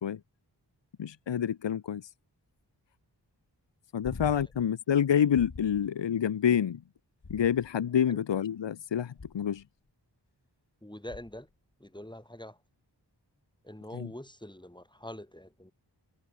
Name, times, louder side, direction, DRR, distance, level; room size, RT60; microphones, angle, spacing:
voice 1, 1.0-2.1 3.9-6.8 7.3-9.6 14.0-14.1, left 8 dB, 80° left, 0.6 m, -28 dB
sound 1, 4.0-4.7 5.3-5.9 7.2-7.9 9.2-9.6 11.1-11.5 13.9-14.0, left 4 dB, 60° left, 1.7 m, -45 dB
voice 2, 10.8-11.5 11.8-12.6 13.6-15.7, left 1 dB, 10° left, 2.7 m, -44 dB
wide cardioid pair, 40°, 43 cm